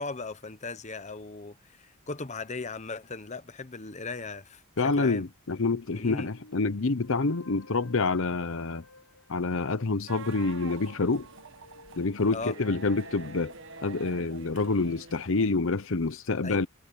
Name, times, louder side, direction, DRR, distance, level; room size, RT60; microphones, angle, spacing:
voice 1, 0.0-5.3 5.9-6.3 12.3-12.6 16.4-16.6, left 3 dB, 30° left, 1.0 m, -38 dB
voice 2, 4.8-8.8 9.3-11.3 12.0-13.5 13.8-16.7, left 3 dB, 60° left, 0.8 m, -27 dB
sound 1, 6.0-10.5 11.2-14.7, left 2 dB, 75° left, 7.7 m, -54 dB
sound 2, 10.1-15.5, right 4 dB, 60° right, 1.5 m, -46 dB
head